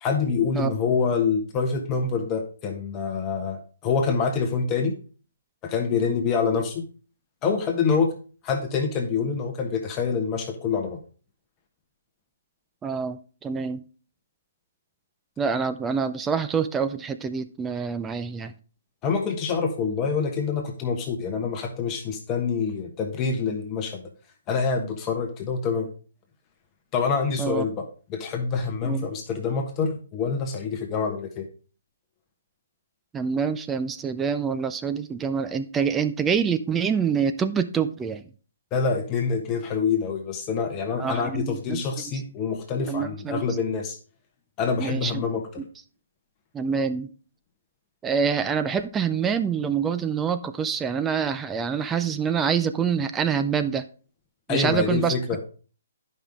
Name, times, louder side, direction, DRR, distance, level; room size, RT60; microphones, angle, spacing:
voice 1, 0.0-5.0 5.6-6.9 7.4-8.1 8.4-11.0 19.0-24.1 24.5-25.9 26.9-27.8 28.1-31.5 38.7-44.0 44.6-45.4 54.5-55.4, left 5 dB, 25° left, 3 dB, 1.2 m, -26 dB
voice 2, 12.8-13.8 15.4-18.5 27.4-27.6 28.8-29.1 33.1-38.2 41.0-41.8 42.1-42.2 42.9-43.4 44.8-45.2 45.6-45.7 46.5-47.1 48.0-53.9 54.5-55.2, right 6 dB, 15° right, 10 dB, 0.4 m, -26 dB
10.0 x 5.5 x 3.6 m, 0.38 s
hypercardioid pair, 140°, 0 cm